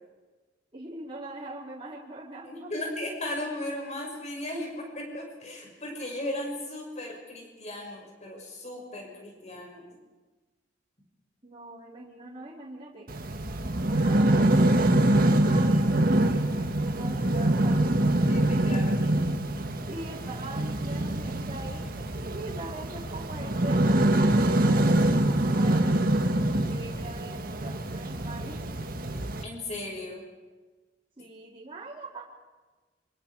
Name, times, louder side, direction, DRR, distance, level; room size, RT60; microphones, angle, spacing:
voice 1, 0.7-2.7 11.4-13.1 13.9-14.4 15.0-18.2 19.8-26.0 26.6-28.6 31.2-32.2, right 2 dB, 30° right, -6 dB, 4.4 m, -42 dB
voice 2, 2.4-9.8 18.3-19.3 29.4-30.2, left 1 dB, 40° left, 0 dB, 6.0 m, -36 dB
sound 1, 13.1-29.4, right 1 dB, 50° right, 1.7 m, -25 dB
26.0 x 26.0 x 4.9 m, 1.3 s
head